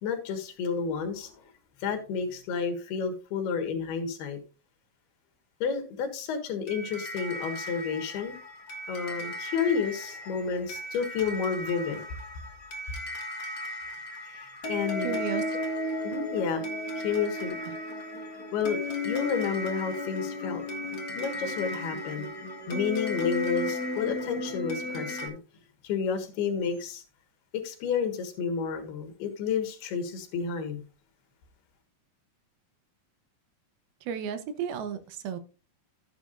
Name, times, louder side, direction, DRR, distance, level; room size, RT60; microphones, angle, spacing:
voice 1, 0.0-1.4 1.8-4.4 5.6-8.4 8.9-12.0 14.3-15.2 16.0-16.6 17.0-17.6 18.5-18.8 19.0-20.6 21.2-22.3 22.7-25.4 25.8-27.0 27.5-30.9, left 6 dB, 90° left, 3.7 m, -30 dB
sound 1, 6.7-25.3, left 1 dB, 50° left, 1.2 m, -35 dB
voice 2, 15.0-15.6 17.7-17.8 34.0-35.4, right 7 dB, 75° right, 2.9 m, -34 dB
13.0 x 9.4 x 2.6 m
omnidirectional pair, 4.4 m